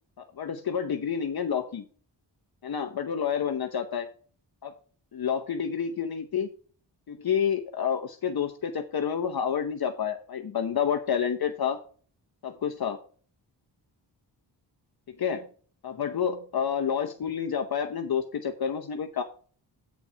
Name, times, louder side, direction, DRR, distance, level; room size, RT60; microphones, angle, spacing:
voice 1, 0.4-1.8 2.6-4.1 4.6-4.7 5.1-6.5 7.1-11.8 12.4-13.0 15.2-15.4 15.8-19.2, left 7 dB, 55° left, 5 dB, 0.9 m, -29 dB
8.3 x 4.7 x 5.6 m, 0.43 s
cardioid pair, 80°, 44 cm